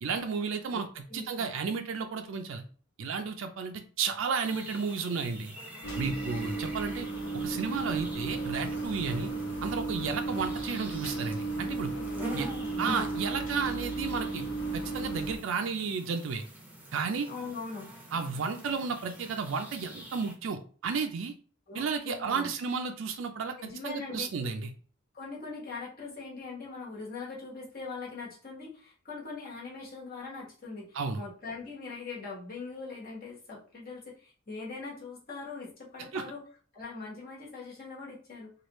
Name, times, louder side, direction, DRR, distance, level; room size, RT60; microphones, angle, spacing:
voice 1, 0.0-2.6 3.0-5.5 6.0-7.1 7.3-9.3 9.6-11.9 12.3-12.5 12.8-14.5 14.7-16.4 16.9-17.3 18.1-21.3 21.7-24.7 30.9-31.2 36.1-36.2, right 5 dB, 70° right, 6 dB, 0.4 m, -33 dB
voice 2, 0.7-1.4 12.2-12.9 17.3-17.9 21.7-22.5 23.6-24.3 25.1-36.5 36.7-38.5, left 4 dB, 50° left, -4 dB, 1.3 m, -41 dB
sound 1, 4.4-20.3, right 1 dB, 10° right, 0.7 m, -46 dB
sound 2, 5.8-15.4, right 3 dB, 90° left, 1.0 m, -34 dB
3.0 x 2.4 x 3.0 m, 0.41 s
head